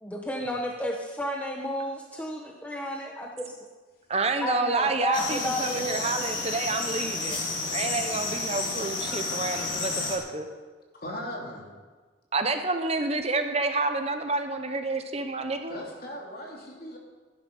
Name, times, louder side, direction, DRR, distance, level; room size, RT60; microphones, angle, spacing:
voice 1, 0.0-3.5 4.4-6.1, equal, 5° left, 0 dB, 1.0 m, -32 dB
voice 2, 4.1-7.4 7.7-10.5 12.3-15.8, right 3 dB, 35° right, 7 dB, 0.9 m, -29 dB
sound 1, 5.1-10.2, left 3 dB, 80° left, 3.5 m, -31 dB
voice 3, 10.9-11.7 15.7-17.0, equal, 50° left, -1 dB, 3.1 m, -38 dB
16.5 x 11.0 x 5.5 m, 1.4 s
head